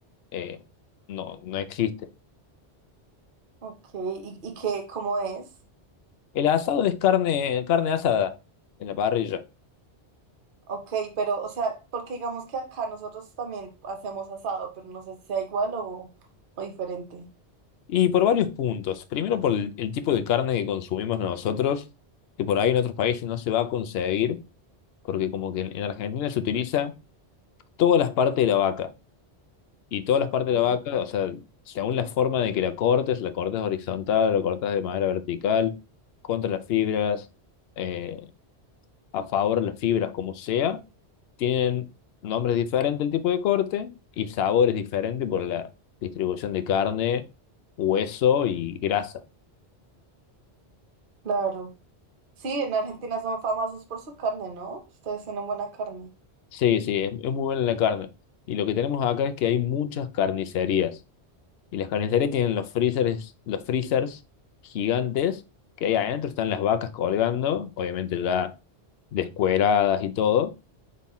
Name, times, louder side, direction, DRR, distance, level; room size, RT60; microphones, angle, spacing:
voice 1, 1.1-2.0 6.3-8.4 8.8-9.4 17.9-21.8 22.4-24.4 25.1-26.9 27.8-28.9 29.9-31.4 31.7-35.8 36.3-37.3 37.8-38.3 39.1-40.8 41.4-41.9 42.2-45.7 46.0-47.2 47.8-49.1 56.5-58.1 58.5-61.0 61.7-64.2 64.6-65.4 65.8-68.5 69.1-70.5, left 9 dB, 70° left, 0.8 m, -25 dB
voice 2, 3.6-5.4 10.7-16.1 16.6-17.3 30.5-30.8 51.2-51.7 52.4-56.1, right 4 dB, 55° right, 0.9 m, -31 dB
5.3 x 2.1 x 4.1 m
omnidirectional pair, 1.1 m